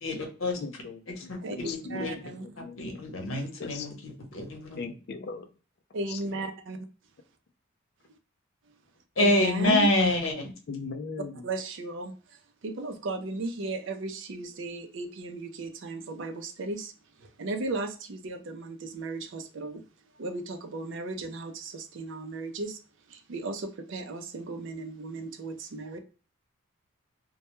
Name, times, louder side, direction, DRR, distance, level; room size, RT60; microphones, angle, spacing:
voice 1, 0.0-0.6 1.3-2.2 2.8-4.8 9.2-10.5, left 1 dB, 75° left, 0.8 m, -27 dB
voice 2, 0.6-3.9 4.8-5.5 6.1-6.2 10.7-11.5, left 4 dB, 50° left, 0.3 m, -40 dB
voice 3, 1.4-2.6 5.9-6.8 9.2-9.9 11.4-19.8 20.2-22.8 23.1-26.0, right 2 dB, 60° right, 0.4 m, -36 dB
2.2 x 2.2 x 2.9 m
head